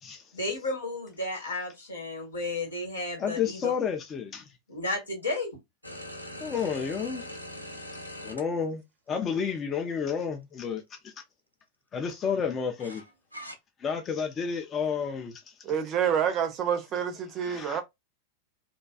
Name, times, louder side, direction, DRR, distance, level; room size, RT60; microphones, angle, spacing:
voice 1, 0.3-3.7 4.7-5.5, left 2 dB, 75° left, 1.2 m, -33 dB
voice 2, 3.2-4.5 6.4-7.2 8.2-8.8 9.1-11.1 11.9-13.0 13.8-15.4 17.4-17.8, left 6 dB, 25° left, 0.4 m, -31 dB
sound 1, 5.8-8.4 9.4-9.5 12.8-13.5, left 1 dB, 90° right, 0.5 m, -41 dB
voice 3, 15.6-17.8, right 8 dB, 35° right, 0.5 m, -28 dB
2.5 x 2.3 x 2.2 m
figure-of-eight pair, 90°, 0 cm